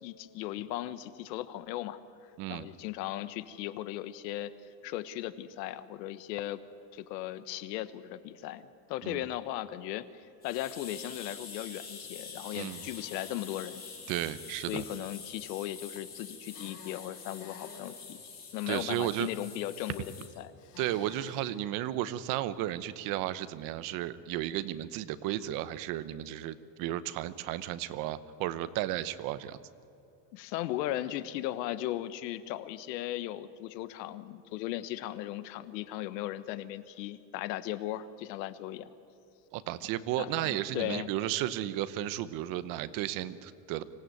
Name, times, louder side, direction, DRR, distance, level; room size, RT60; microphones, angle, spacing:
voice 1, 0.0-2.0 2.5-4.5 4.8-6.6 6.9-13.8 14.7-18.2 18.5-20.5 30.3-38.9 40.2-41.1, left 14 dB, 75° left, 13 dB, 1.3 m, -37 dB
sound 1, 10.4-20.3, left 5 dB, 20° left, 4.2 m, -46 dB
sound 2, 12.4-13.9 16.4-17.9 20.6-21.5, left 6 dB, 35° left, 2.7 m, -52 dB
voice 2, 14.1-14.8 18.7-19.3 20.8-29.6 39.5-43.8, right 13 dB, 40° right, 14 dB, 0.9 m, -34 dB
25.0 x 16.0 x 9.3 m, 2.8 s
cardioid pair, 170°, 50 cm